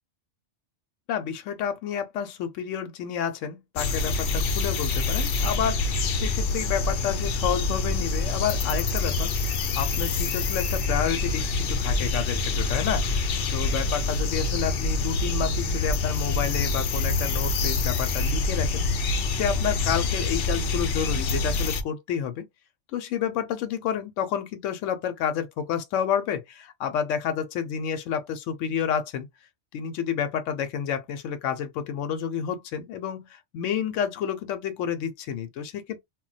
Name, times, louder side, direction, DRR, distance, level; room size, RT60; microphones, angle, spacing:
voice 1, 1.1-9.3 9.8-13.1 13.5-18.9 19.3-22.5 22.9-29.3 29.7-36.0, left 8 dB, 85° left, 0.9 m, -30 dB
sound 1, 3.8-21.8, left 3 dB, 60° left, 0.6 m, -26 dB
2.2 x 2.1 x 3.8 m
omnidirectional pair, 1.2 m